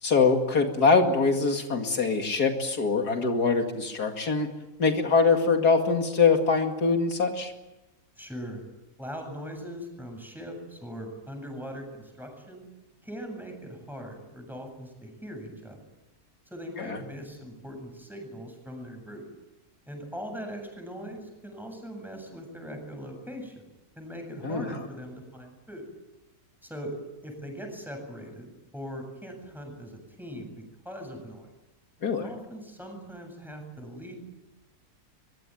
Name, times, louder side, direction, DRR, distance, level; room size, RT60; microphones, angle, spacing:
voice 1, 0.0-4.5 4.8-7.5 16.8-17.0 24.4-24.8 32.0-32.3, left 4 dB, 85° left, 4 dB, 2.8 m, -23 dB
voice 2, 8.2-8.6 9.0-12.6 13.0-15.8 16.5-19.3 19.9-23.6 24.0-25.9 26.6-27.0 27.2-31.5 32.2-34.2, equal, ahead, 3 dB, 7.9 m, -40 dB
23.0 x 22.5 x 9.3 m, 1.0 s
omnidirectional pair, 1.6 m